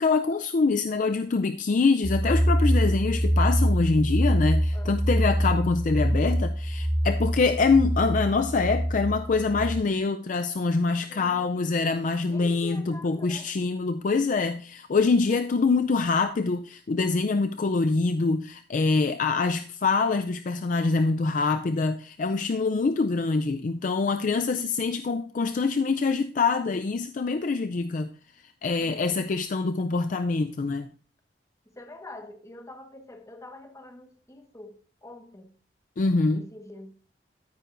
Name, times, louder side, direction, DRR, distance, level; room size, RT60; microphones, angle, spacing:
voice 1, 0.0-28.1 28.6-30.9 36.0-36.4, left 4 dB, 45° left, 0.4 m, -25 dB
sound 1, 2.0-9.8, equal, 10° right, 0.5 m, -25 dB
voice 2, 4.7-5.0 11.1-11.7 12.3-13.5 19.3-19.6 28.8-29.2 31.8-34.7 35.0-35.5 36.3-36.9, left 1 dB, 20° left, 1.4 m, -45 dB
13.5 x 9.3 x 2.5 m
head